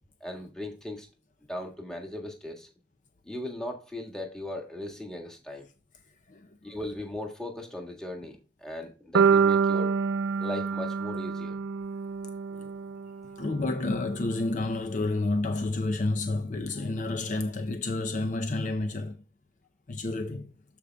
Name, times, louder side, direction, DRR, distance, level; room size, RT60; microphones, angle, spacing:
voice 1, 0.2-1.1 1.5-2.7 3.2-5.6 6.6-10.0 10.4-11.6 12.5-12.7, left 1 dB, 5° left, 1.6 m, -38 dB
sound 1, 9.2-13.3, right 5 dB, 90° right, 0.5 m, -26 dB
voice 2, 13.4-19.1 19.9-20.5, left 2 dB, 45° left, 0.5 m, -30 dB
13.5 x 5.1 x 2.2 m
head